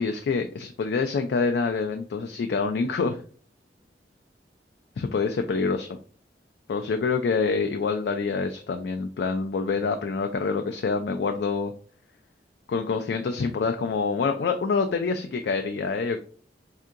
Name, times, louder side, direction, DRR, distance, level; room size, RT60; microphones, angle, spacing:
voice 1, 0.0-3.2 5.0-6.0 6.7-11.7 12.7-16.2, left 4 dB, 65° left, 5 dB, 0.3 m, -26 dB
4.4 x 2.7 x 2.4 m, 0.43 s
head